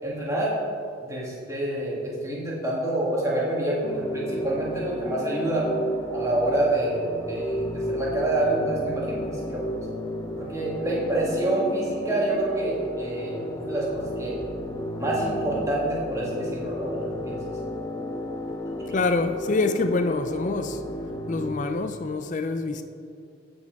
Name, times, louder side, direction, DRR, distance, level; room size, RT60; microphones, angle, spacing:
voice 1, 0.0-0.6 1.0-5.7 6.1-9.8 10.4-14.4 15.0-17.5 18.8-18.9, right 1 dB, 15° right, 1.9 m, -27 dB
sound 1, 3.8-21.5, equal, 15° left, 0.8 m, -33 dB
voice 2, 18.9-20.8 21.3-22.8, left 3 dB, 35° left, 0.4 m, -26 dB
15.0 x 5.2 x 5.3 m
head